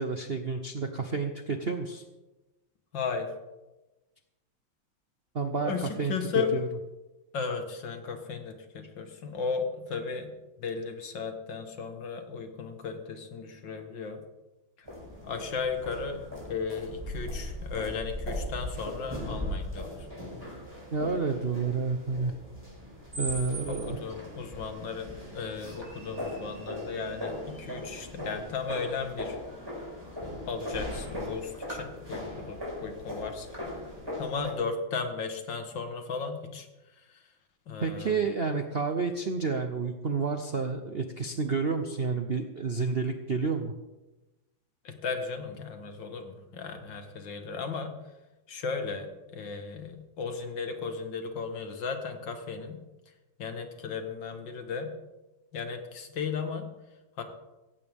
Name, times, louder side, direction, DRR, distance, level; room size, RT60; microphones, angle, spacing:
voice 1, 0.0-2.0 5.3-6.2 6.5-6.7 20.9-22.3 23.2-24.0 37.8-43.7, right 4 dB, 50° right, 6 dB, 0.7 m, -30 dB
voice 2, 2.9-3.3 5.6-6.5 7.3-10.3 10.6-14.2 14.8-14.9 15.2-16.2 16.4-20.1 23.7-29.4 30.4-33.5 34.2-36.7 37.1-37.2 37.7-38.1 44.8-48.0 48.5-52.8 53.4-54.9 55.5-56.7 57.2-57.3, left 5 dB, 65° left, 6 dB, 2.2 m, -35 dB
sound 1, 14.8-34.5, left 1 dB, 10° right, 4.9 m, -39 dB
16.5 x 15.5 x 3.6 m, 1.1 s
omnidirectional pair, 2.2 m